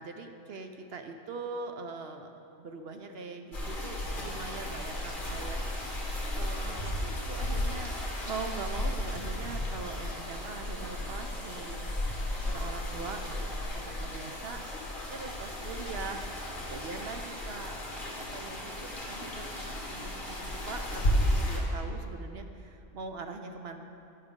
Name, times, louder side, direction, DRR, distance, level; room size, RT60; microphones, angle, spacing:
voice 1, 0.0-2.3 2.6-5.6 6.3-8.0 8.2-11.9 12.4-13.5 13.7-14.6 15.1-16.2 16.6-23.8, right 4 dB, 60° right, 5 dB, 0.8 m, -42 dB
sound 1, 3.5-21.6, left 1 dB, 40° left, 1.8 m, -34 dB
11.0 x 11.0 x 3.7 m, 2.7 s
omnidirectional pair, 1.3 m